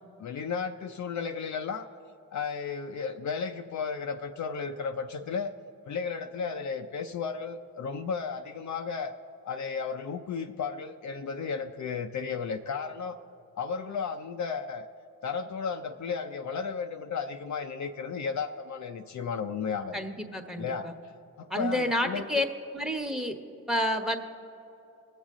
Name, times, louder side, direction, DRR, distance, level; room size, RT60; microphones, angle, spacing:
voice 1, 0.2-1.9 2.3-5.5 5.9-9.1 9.4-13.2 13.6-14.9 15.2-20.0 20.6-20.9 21.4-22.3, left 5 dB, 55° left, 5 dB, 0.6 m, -34 dB
voice 2, 19.9-20.9 21.5-22.4 22.7-23.3 23.7-24.2, left 1 dB, ahead, 6 dB, 1.2 m, -29 dB
19.5 x 7.3 x 3.7 m, 2.9 s
supercardioid pair, 55°, 35 cm